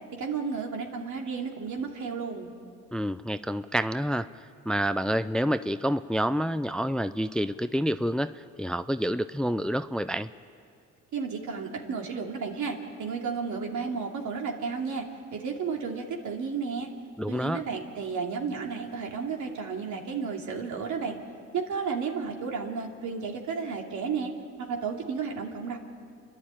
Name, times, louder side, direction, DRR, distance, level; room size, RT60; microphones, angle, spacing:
voice 1, 0.2-2.5 11.1-15.1 15.3-16.9 17.3-21.2 21.5-24.3 24.6-25.8, right 5 dB, 75° right, 2 dB, 2.7 m, -32 dB
voice 2, 2.9-4.3 4.7-10.3 17.2-17.6, equal, 5° left, 12 dB, 0.5 m, -28 dB
29.5 x 11.5 x 8.9 m, 2.4 s
cardioid pair, 90°, 30 cm